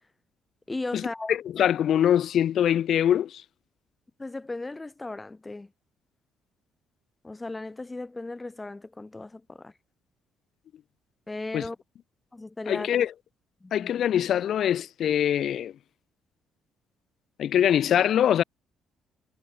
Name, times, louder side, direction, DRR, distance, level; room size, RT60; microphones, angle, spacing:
voice 1, 0.7-1.3 4.2-5.7 7.2-9.7 11.3-11.8 12.3-12.9 13.6-13.9, left 2 dB, 15° left, 3.2 m, -36 dB
voice 2, 1.3-3.4 11.5-11.6 12.7-13.1 13.7-15.7 17.4-18.4, left 10 dB, 65° left, 0.5 m, -23 dB
cardioid pair, 90°, 0 cm